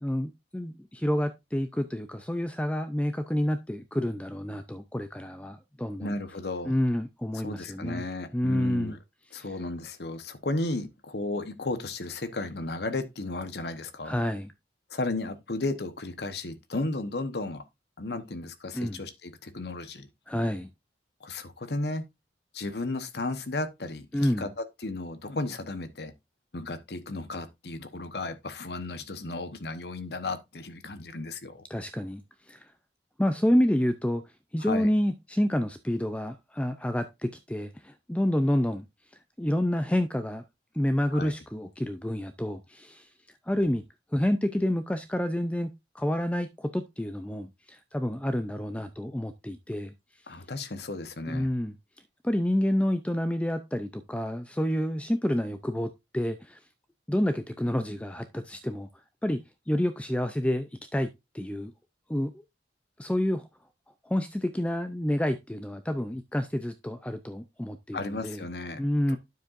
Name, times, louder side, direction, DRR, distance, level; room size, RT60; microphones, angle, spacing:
voice 1, 0.0-6.1 6.7-8.0 8.3-9.0 9.4-9.5 14.0-14.5 18.7-19.0 20.3-20.7 24.1-24.5 31.7-32.2 32.5-32.6 33.2-34.2 34.5-38.8 39.4-40.4 40.7-43.1 43.4-43.8 44.1-49.9 51.3-51.7 52.2-56.6 57.1-58.9 59.2-59.4 59.7-61.1 61.3-61.7 62.1-62.3 63.0-63.4 64.0-68.4 68.8-69.2, left 1 dB, 5° left, 0.4 m, -28 dB
voice 2, 6.0-6.7 7.3-9.0 9.3-14.2 14.9-17.6 18.0-20.1 21.2-22.1 22.5-26.1 26.5-31.6 34.6-34.9 41.1-41.3 50.3-51.5 67.9-68.8 69.1-69.2, left 2 dB, 60° left, 1.0 m, -34 dB
9.3 x 7.3 x 2.5 m
head